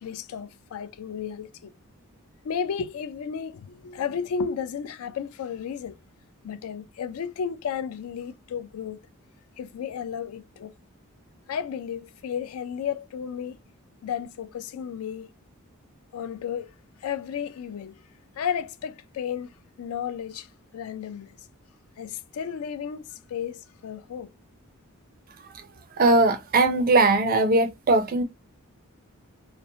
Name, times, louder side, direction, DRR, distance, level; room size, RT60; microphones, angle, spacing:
voice 1, 0.0-1.7 2.4-6.0 6.4-9.0 9.6-10.7 11.5-13.6 14.0-15.3 16.1-16.7 17.0-18.0 18.4-19.5 19.8-20.5 20.7-21.4 22.0-24.3, left 7 dB, 75° left, 0.3 m, -33 dB
voice 2, 26.0-28.2, right 2 dB, 40° right, 0.4 m, -20 dB
2.6 x 2.0 x 2.6 m
head